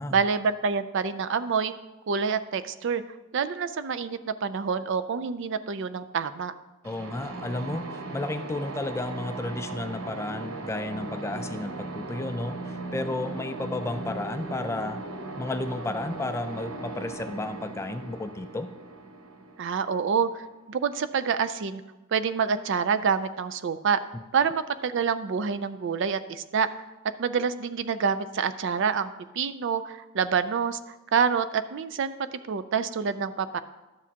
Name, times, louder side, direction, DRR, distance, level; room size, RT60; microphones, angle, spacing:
voice 1, 0.1-1.7 2.1-3.0 3.3-6.5 19.6-20.4 20.7-21.8 22.1-24.0 24.3-26.7 27.2-30.8 31.1-32.1 32.5-33.6, right 6 dB, 60° right, 12 dB, 0.4 m, -27 dB
voice 2, 6.8-15.0 15.4-18.7 24.1-24.2, left 2 dB, 15° left, 9 dB, 0.3 m, -33 dB
sound 1, 6.8-20.5, right 2 dB, 80° right, 0.9 m, -38 dB
12.0 x 7.2 x 2.8 m, 1.1 s
head